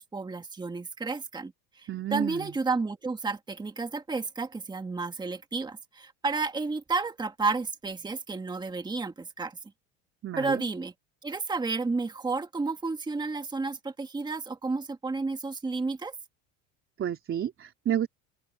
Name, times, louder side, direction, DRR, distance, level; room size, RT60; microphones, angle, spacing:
voice 1, 0.0-1.5 1.8-9.6 10.4-10.9 11.2-16.1, right 3 dB, 10° right, 1.7 m, -31 dB
voice 2, 1.9-2.5 10.2-10.6 17.0-18.1, right 10 dB, 35° right, 3.7 m, -30 dB
open air
cardioid pair, 130°, 36 cm